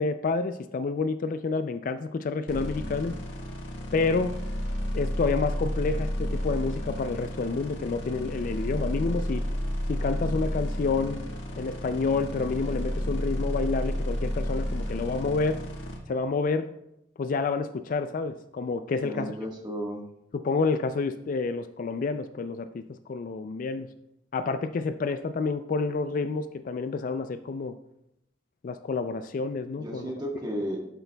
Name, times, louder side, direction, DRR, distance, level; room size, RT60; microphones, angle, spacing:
voice 1, 0.0-3.1 3.9-4.3 4.9-9.4 9.9-11.2 11.6-15.6 16.1-16.7 17.2-19.3 20.3-23.9 24.3-27.8 28.6-30.1, left 4 dB, 45° left, 10 dB, 0.3 m, -29 dB
sound 1, 2.5-16.0, equal, 85° left, 1.5 m, -31 dB
voice 2, 19.0-20.0 29.7-30.8, equal, 20° right, -1 dB, 1.4 m, -33 dB
11.5 x 6.8 x 2.3 m, 0.83 s
head